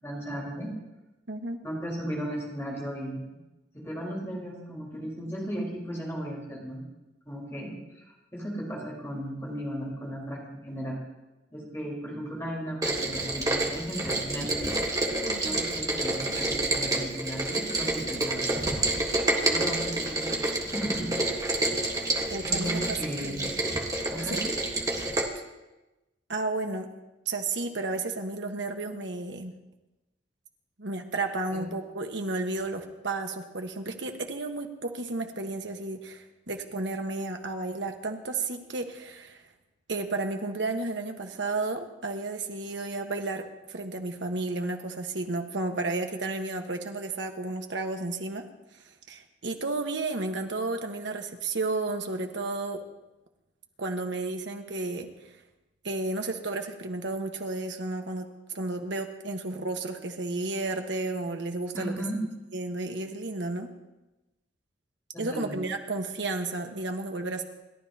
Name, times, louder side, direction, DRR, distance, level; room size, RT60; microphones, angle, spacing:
voice 1, 0.0-0.7 1.6-3.2 3.7-6.8 7.3-11.0 11.5-14.7 15.4-18.4 19.4-20.3 20.6-21.1 22.4-23.4 24.1-24.4 31.5-31.6 61.7-62.2 65.1-65.6, equal, 15° left, -4 dB, 4.4 m, -35 dB
voice 2, 1.3-1.6 15.3-15.6 22.3-23.0 23.2-23.6 24.3-24.4 26.3-26.9 27.2-29.5 30.8-39.4 39.9-48.4 49.1-52.8 53.8-55.1 55.8-62.0 62.5-63.7 65.2-67.4, right 2 dB, 70° right, 4 dB, 1.4 m, -32 dB
Rain, 12.8-25.2, right 2 dB, 20° right, 1.4 m, -28 dB
29.0 x 12.5 x 2.9 m, 1.0 s
head